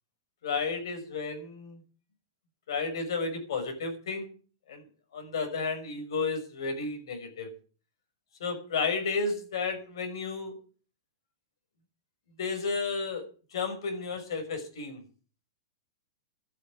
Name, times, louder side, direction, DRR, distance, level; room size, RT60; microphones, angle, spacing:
voice 1, 0.4-1.8 2.7-4.3 4.7-4.8 5.1-7.5 8.4-10.5 12.4-13.2 13.5-15.0, left 4 dB, 70° left, 8 dB, 6.0 m, -32 dB
13.0 x 9.0 x 9.4 m, 0.39 s
supercardioid pair, 175°, 3 cm